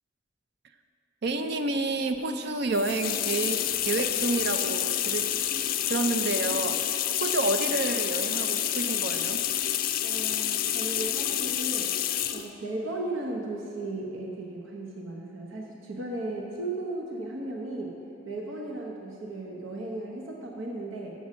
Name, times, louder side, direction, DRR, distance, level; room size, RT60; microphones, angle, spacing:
voice 1, 1.2-5.3 5.9-6.8 7.2-9.4, right 3 dB, 55° right, 8 dB, 0.5 m, -29 dB
sound 1, 2.7-12.5, left 11 dB, 50° left, 0.4 m, -28 dB
voice 2, 10.0-11.9 12.3-17.9 18.2-21.1, right 2 dB, 90° right, -1 dB, 1.0 m, -35 dB
7.4 x 7.1 x 6.2 m, 2.8 s
head